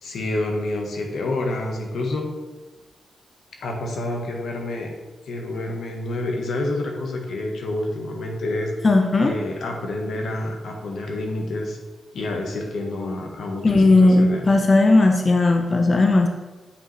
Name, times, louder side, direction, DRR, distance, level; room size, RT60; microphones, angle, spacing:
voice 1, 0.0-2.3 3.6-4.9 5.2-8.8 9.2-11.8 12.1-14.5, left 2 dB, 80° left, 2 dB, 1.3 m, -28 dB
voice 2, 8.8-9.3 13.6-16.3, left 2 dB, 30° left, 3 dB, 0.5 m, -16 dB
8.6 x 5.2 x 3.3 m, 1.2 s
wide cardioid pair, 140°, 0 cm